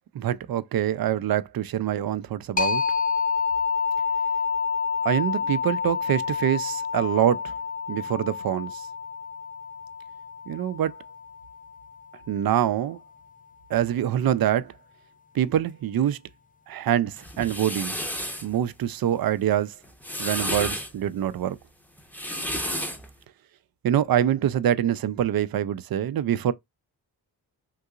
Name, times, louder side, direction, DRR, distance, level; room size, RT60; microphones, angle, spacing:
voice 1, 0.1-2.8 5.0-7.5 7.9-8.9 10.5-11.0 12.3-13.0 13.7-14.7 15.3-16.2 16.7-18.0 18.4-19.7 20.2-21.6 23.8-26.5, right 10 dB, 55° right, 0.5 m, -25 dB
sound 1, 2.6-12.0, left 6 dB, 20° left, 0.4 m, -28 dB
sound 2, 17.2-18.5 19.8-20.9 22.0-23.1, equal, 5° left, 0.8 m, -31 dB
3.8 x 2.7 x 2.4 m
cardioid pair, 55°, 44 cm